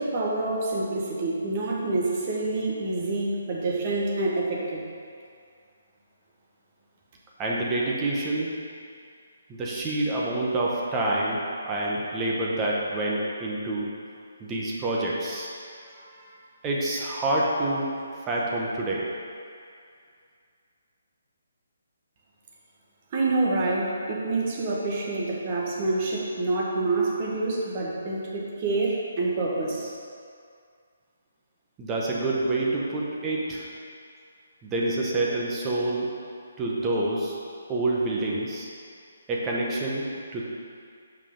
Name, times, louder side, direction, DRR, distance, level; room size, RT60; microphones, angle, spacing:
voice 1, 0.0-4.8 23.1-29.9, right 2 dB, 35° right, -3 dB, 1.3 m, -27 dB
voice 2, 7.4-8.5 9.5-13.9 14.4-15.5 15.9-16.3 16.6-17.9 18.2-19.1 31.8-33.7 34.6-36.1 36.6-37.4 37.7-38.7 39.3-40.4, right 2 dB, 20° right, -4 dB, 1.0 m, -27 dB
5.8 x 4.8 x 5.3 m, 2.3 s
figure-of-eight pair, 140°, 0 cm